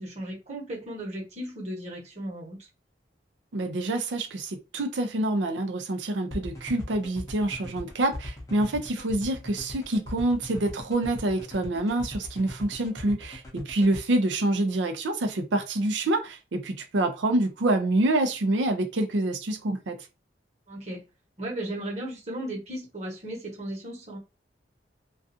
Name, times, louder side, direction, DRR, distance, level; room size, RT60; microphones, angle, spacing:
voice 1, 0.0-2.7 8.5-8.6 20.7-21.0 21.4-24.2, right 1 dB, 40° right, 1.0 m, -36 dB
voice 2, 3.5-20.0, right 2 dB, 85° right, 0.5 m, -26 dB
sound 1, 6.3-14.0, left 1 dB, 20° left, 0.6 m, -39 dB
2.4 x 2.3 x 2.6 m
head